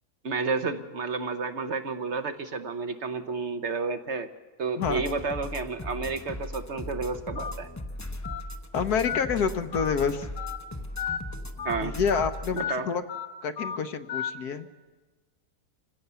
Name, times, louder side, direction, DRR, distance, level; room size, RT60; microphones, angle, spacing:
voice 1, 0.2-4.3 4.6-7.7 11.6-12.0 12.5-12.9, right 4 dB, 50° right, 8 dB, 1.1 m, -31 dB
sound 1, 4.8-12.6, left 1 dB, 15° left, 0.6 m, -38 dB
Telephone, 7.4-7.5 8.2-8.4 9.0-9.2 9.7-9.9 10.4-10.6 11.0-11.2 11.6-11.8 12.1-12.3 12.6-12.7 13.1-13.3 13.6-13.8 14.1-14.3, left 8 dB, 55° left, 1.4 m, -32 dB
voice 2, 8.7-10.3 11.8-13.0 13.4-14.7, left 6 dB, 80° left, 9 dB, 1.5 m, -28 dB
26.0 x 17.0 x 6.9 m, 1.3 s
omnidirectional pair, 1.6 m